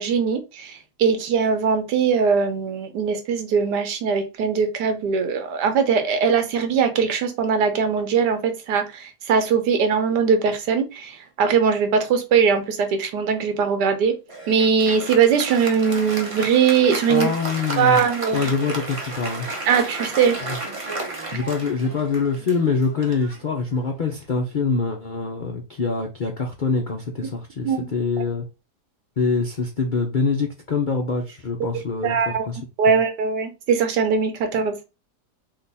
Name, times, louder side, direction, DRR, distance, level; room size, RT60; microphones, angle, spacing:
voice 1, 0.0-14.1 14.5-17.3 17.8-18.5 19.7-20.4 27.6-27.9 32.0-32.5 32.8-34.7, right 6 dB, 80° right, 1.4 m, -21 dB
Applause, 14.3-24.1, right 2 dB, 40° right, 0.5 m, -33 dB
voice 2, 17.1-18.0 18.3-19.5 21.3-28.4 29.2-32.6 32.9-33.0, left 4 dB, 60° left, 0.5 m, -24 dB
3.7 x 2.4 x 4.0 m
omnidirectional pair, 1.8 m